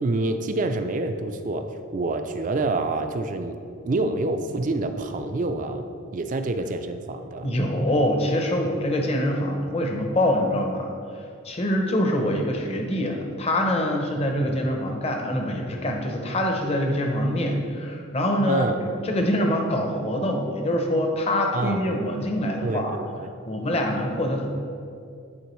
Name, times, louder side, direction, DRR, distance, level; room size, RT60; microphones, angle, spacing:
voice 1, 0.0-3.6 3.9-5.8 6.1-7.5 13.9-14.0 14.5-14.6 18.5-18.8 21.5-21.8 22.6-23.3, right 2 dB, 35° right, 7 dB, 0.4 m, -27 dB
voice 2, 7.4-10.9 11.4-22.9 23.5-24.5, left 1 dB, 30° left, 2 dB, 0.6 m, -25 dB
9.6 x 4.4 x 3.1 m, 2.5 s
head